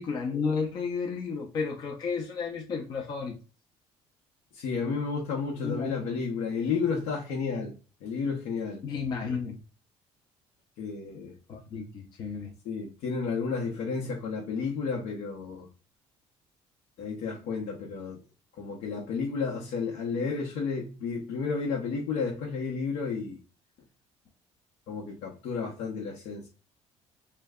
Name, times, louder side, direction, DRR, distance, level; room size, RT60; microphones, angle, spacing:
voice 1, 0.0-3.4 5.6-5.9 8.8-9.6 11.5-12.5, left 5 dB, 40° left, 0.6 m, -32 dB
voice 2, 4.5-7.7 8.0-8.8 10.8-11.4 12.6-15.7 17.0-18.2 18.6-23.4 24.9-26.5, left 5 dB, 80° left, 0.8 m, -32 dB
3.2 x 2.2 x 3.5 m
cardioid pair, 170°, 11 cm